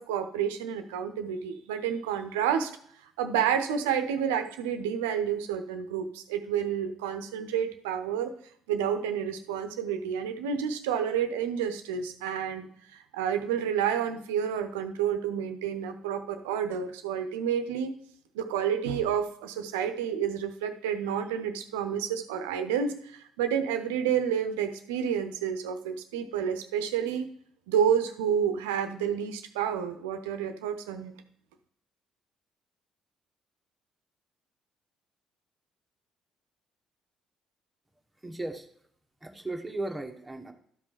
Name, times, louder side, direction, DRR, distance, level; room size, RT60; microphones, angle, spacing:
voice 1, 0.0-2.7 3.2-8.3 8.7-17.9 18.3-27.3 27.7-31.1, right 8 dB, 75° right, 8 dB, 0.7 m, -29 dB
voice 2, 38.2-38.7 39.2-40.5, right 2 dB, 10° right, 4 dB, 1.4 m, -36 dB
12.5 x 5.2 x 4.8 m, 0.64 s
figure-of-eight pair, 45°, 0 cm